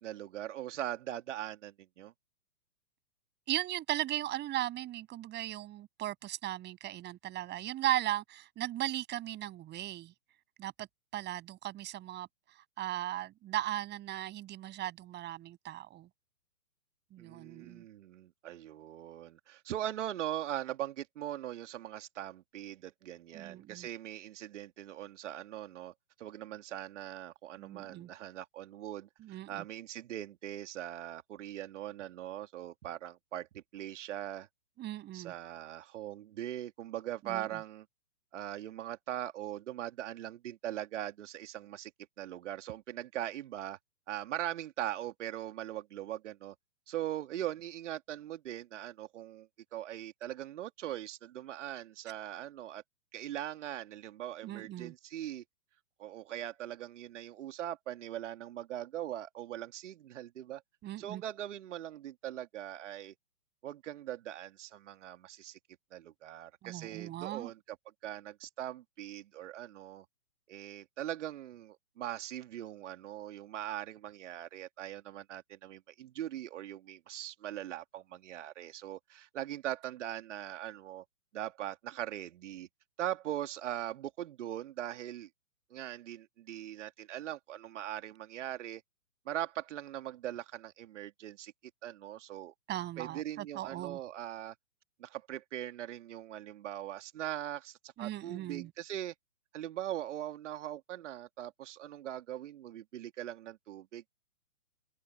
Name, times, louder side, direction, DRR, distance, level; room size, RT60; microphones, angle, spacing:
voice 1, 0.0-2.1 17.2-25.9 26.2-34.5 35.1-37.9 38.3-41.9 42.2-43.8 44.1-46.5 46.9-52.8 53.1-55.4 56.0-60.6 61.0-63.1 63.6-65.6 65.9-67.8 68.0-70.1 70.5-81.0 81.3-82.7 83.0-85.3 85.7-88.8 89.3-91.5 91.8-92.5 93.0-94.5 95.0-99.1 99.5-104.1, right 12 dB, 50° right, 2.5 m, -41 dB
voice 2, 3.5-10.1 10.6-10.9 11.1-12.3 12.8-16.1 17.1-17.8 23.3-23.9 27.6-28.1 29.2-29.6 34.8-35.3 37.2-37.5 54.4-54.9 60.8-61.2 66.6-67.5 92.7-94.0 98.0-98.7, right 14 dB, 20° right, 7.8 m, -37 dB
open air
figure-of-eight pair, 130°, 47 cm